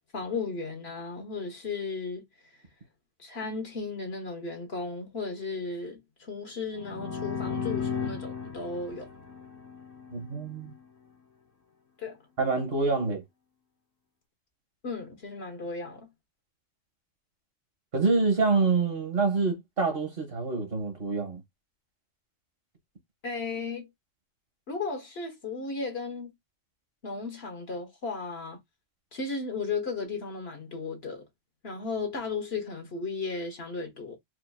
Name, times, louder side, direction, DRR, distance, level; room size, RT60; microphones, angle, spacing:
voice 1, 0.1-2.3 3.2-9.1 12.0-12.2 14.8-16.1 23.2-23.9 24.7-26.3 27.0-28.6 29.1-31.2 31.6-34.2, left 4 dB, 55° left, 1.4 m, -35 dB
sound 1, 6.7-10.4, left 6 dB, 85° left, 1.6 m, -35 dB
voice 2, 10.1-10.7 12.4-13.2 17.9-21.4, right 4 dB, 50° right, 1.5 m, -26 dB
4.5 x 2.9 x 2.3 m
omnidirectional pair, 1.3 m